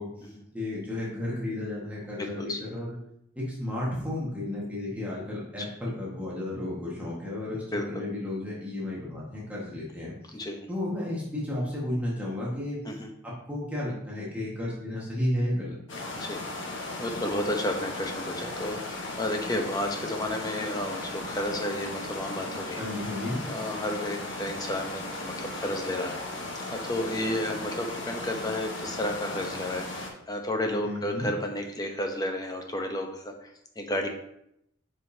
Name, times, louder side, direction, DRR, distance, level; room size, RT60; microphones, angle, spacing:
voice 1, 0.0-3.0 3.3-10.1 10.7-12.8 13.2-15.8 22.7-23.4 30.8-31.3, left 1 dB, 5° right, -6 dB, 1.5 m, -33 dB
voice 2, 2.2-2.6 7.7-7.9 10.3-10.7 12.9-13.1 16.1-22.9 23.4-26.3 26.7-34.1, left 1 dB, 20° left, 3 dB, 0.8 m, -32 dB
sound 1, 15.9-30.1, left 2 dB, 65° left, 1.2 m, -36 dB
7.4 x 5.2 x 2.7 m, 0.76 s
head